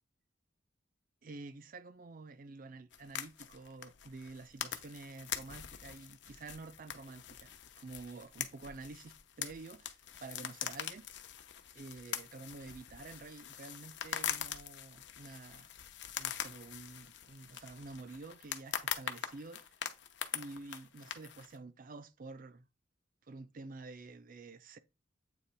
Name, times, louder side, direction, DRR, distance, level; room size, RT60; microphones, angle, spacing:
voice 1, 1.2-11.1 11.7-15.7 16.2-19.7 20.3-22.7 23.3-24.8, right 3 dB, 45° right, 0.5 m, -49 dB
sound 1, 2.9-21.6, left 9 dB, 60° left, 0.7 m, -43 dB
8.1 x 3.0 x 4.3 m
head